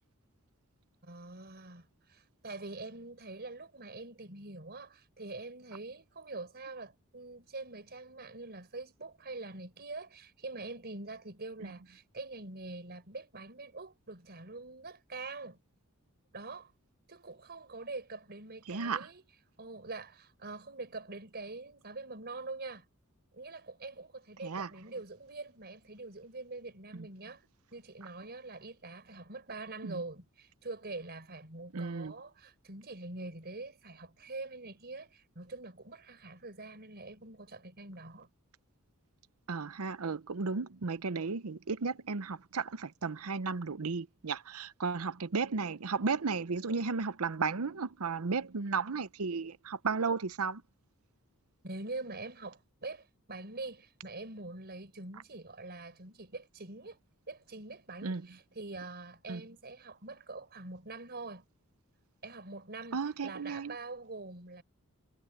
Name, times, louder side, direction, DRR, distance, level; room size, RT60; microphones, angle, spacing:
voice 1, 1.0-15.6 16.3-16.7 17.1-19.2 19.6-22.9 23.3-27.4 27.7-38.3 51.6-57.0 57.3-61.4 62.2-64.6, right 3 dB, 50° right, 4.7 m, -44 dB
voice 2, 18.7-19.1 24.4-24.7 26.9-27.1 29.8-30.0 31.7-32.1 39.5-50.6 58.0-58.3 59.3-59.4 62.9-63.7, right 4 dB, 80° right, 0.8 m, -34 dB
head